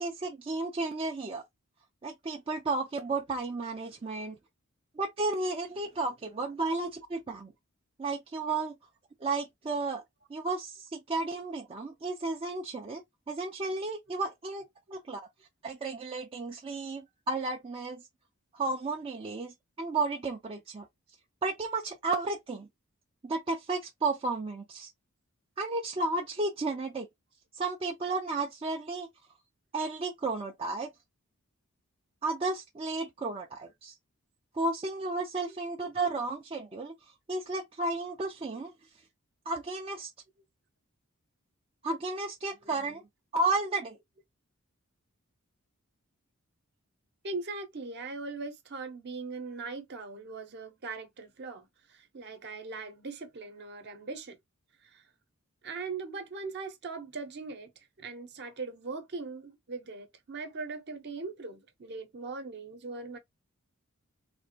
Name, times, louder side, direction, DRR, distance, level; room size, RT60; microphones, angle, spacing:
voice 1, 0.0-1.4 2.0-4.4 5.0-7.5 8.0-8.8 9.2-10.0 10.3-14.6 14.9-15.2 15.6-18.0 18.5-20.9 21.4-22.7 23.2-24.9 25.6-27.1 27.5-29.1 29.7-30.9 32.2-33.9 34.5-36.9 37.3-38.7 39.5-40.1 41.8-43.0 43.3-44.0, right 3 dB, 25° right, 0.4 m, -33 dB
voice 2, 47.2-54.4 54.8-55.1 55.6-63.2, right 4 dB, 50° right, 0.8 m, -40 dB
3.4 x 2.5 x 2.8 m
head